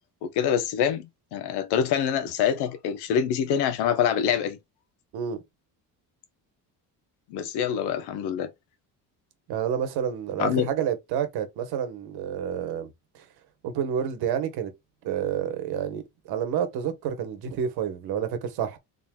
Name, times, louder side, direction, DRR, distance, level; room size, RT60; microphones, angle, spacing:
voice 1, 0.2-4.6 7.3-8.5 10.4-10.7, left 8 dB, 80° left, 1.0 m, -25 dB
voice 2, 9.5-12.9 13.1-13.2 13.6-14.7 15.0-18.8, right 8 dB, 75° right, 1.2 m, -29 dB
4.0 x 3.8 x 2.3 m
cardioid pair, 135°, 39 cm